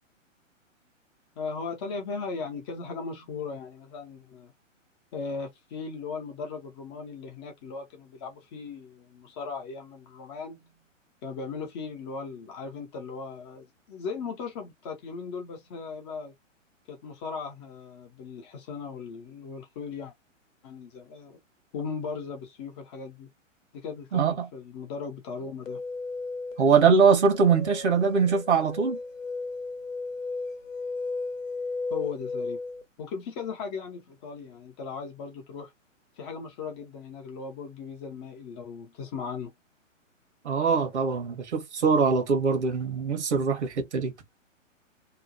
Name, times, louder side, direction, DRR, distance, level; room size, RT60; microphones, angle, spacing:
voice 1, 1.4-4.5 5.1-10.7 11.2-16.3 16.9-20.1 20.6-21.4 21.7-23.3 23.7-25.8 31.9-32.6 33.0-35.7 36.2-39.5, left 5 dB, 20° left, 0.6 m, -37 dB
voice 2, 24.1-24.5 26.6-29.0 40.4-44.1, right 5 dB, 60° right, 1.1 m, -22 dB
sound 1, 25.7-32.8, left 3 dB, 75° left, 0.9 m, -35 dB
2.9 x 2.2 x 2.5 m
figure-of-eight pair, 120°, 39 cm